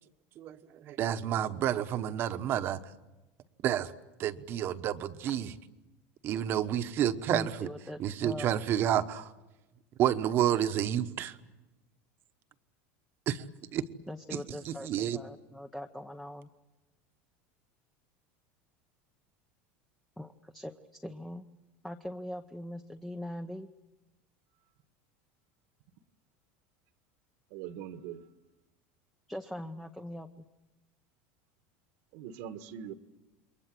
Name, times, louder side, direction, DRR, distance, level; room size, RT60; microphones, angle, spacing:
voice 1, 0.4-2.8 3.6-3.9 4.2-5.5 6.2-7.7 8.0-9.3 10.0-11.3 13.3-13.4 13.7-13.8 14.3-14.4 14.6-15.2, right 11 dB, 40° right, 10 dB, 1.2 m, -30 dB
voice 2, 7.3-8.6 14.1-16.5 20.2-21.4 21.8-23.7 29.3-30.4, left 1 dB, 5° left, 6 dB, 0.8 m, -41 dB
voice 3, 27.5-28.2 32.1-32.9, right 9 dB, 65° right, 9 dB, 1.5 m, -42 dB
28.5 x 22.5 x 7.7 m, 1.1 s
supercardioid pair, 150°, 6 cm